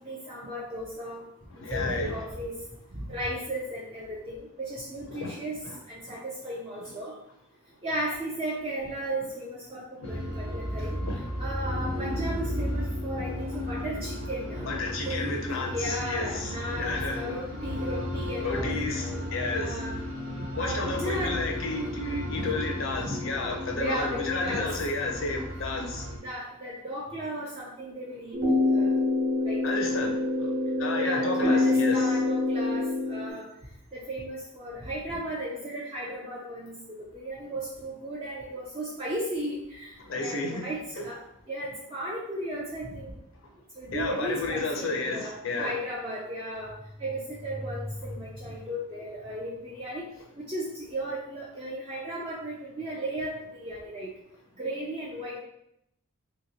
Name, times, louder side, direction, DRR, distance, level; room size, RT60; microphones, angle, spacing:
voice 1, 0.0-1.2 1.5-2.5 2.9-7.1 7.8-11.0 11.4-14.7 15.0-15.2 15.7-18.9 19.5-20.0 20.6-21.4 23.8-24.7 26.2-28.4 28.7-28.9 29.4-29.6 31.0-33.4 33.9-39.9 40.2-41.2 41.5-43.1 43.8-46.7 47.0-50.0 50.5-54.1 54.6-55.4, right 1 dB, 25° right, -6 dB, 0.4 m, -35 dB
voice 2, 1.5-2.2 5.1-5.4 5.6-5.8 6.1-6.2 10.0-10.1 11.0-11.2 13.2-13.3 13.7-13.8 14.6-17.4 18.4-19.8 20.6-26.1 29.6-32.1 40.0-40.7 41.0-41.1 43.9-45.8, left 3 dB, 65° left, 2 dB, 0.6 m, -32 dB
sound 1, 10.0-26.2, left 1 dB, 80° right, 0.9 m, -34 dB
sound 2, 28.3-33.3, left 2 dB, 50° right, 0.8 m, -25 dB
2.9 x 2.9 x 2.8 m, 0.76 s
head